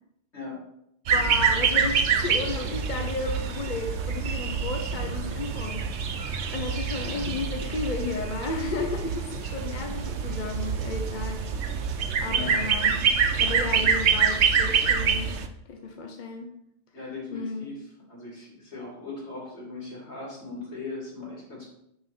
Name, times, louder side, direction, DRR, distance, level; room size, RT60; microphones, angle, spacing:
voice 1, 1.1-6.1 6.5-11.7 12.2-13.1 13.4-15.3 15.7-16.5 17.3-17.7, left 3 dB, 45° left, 3 dB, 0.9 m, -33 dB
sound 1, 1.1-15.5, right 6 dB, 85° right, 1.0 m, -26 dB
voice 2, 6.9-7.4 12.2-12.6 13.7-13.9 16.9-21.8, left 3 dB, 80° left, -4 dB, 3.3 m, -39 dB
9.5 x 5.0 x 4.3 m, 0.77 s
omnidirectional pair, 1.1 m